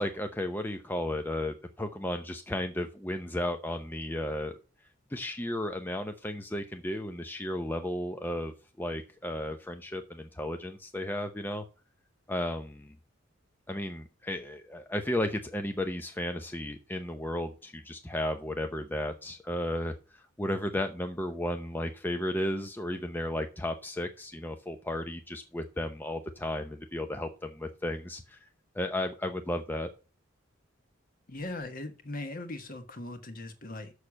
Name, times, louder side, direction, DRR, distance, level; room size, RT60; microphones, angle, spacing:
voice 1, 0.0-4.6 5.1-11.6 12.3-13.0 13.7-19.9 20.4-28.4 28.7-29.9, left 1 dB, 10° left, 0.7 m, -34 dB
voice 2, 31.3-33.9, left 2 dB, 45° left, 1.5 m, -39 dB
6.5 x 6.5 x 7.2 m
head